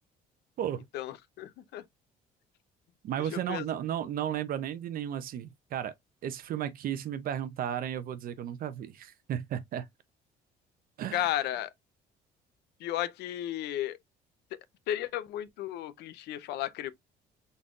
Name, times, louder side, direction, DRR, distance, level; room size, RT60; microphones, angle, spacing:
voice 1, 0.9-1.8 3.2-3.6 11.1-11.7 12.8-14.0 14.5-14.6 14.9-16.9, left 12 dB, 80° left, 0.6 m, -34 dB
voice 2, 3.0-5.9 6.2-9.9 11.0-11.4, right 10 dB, 60° right, 0.6 m, -34 dB
4.0 x 2.3 x 3.6 m
cardioid pair, 110°, 17 cm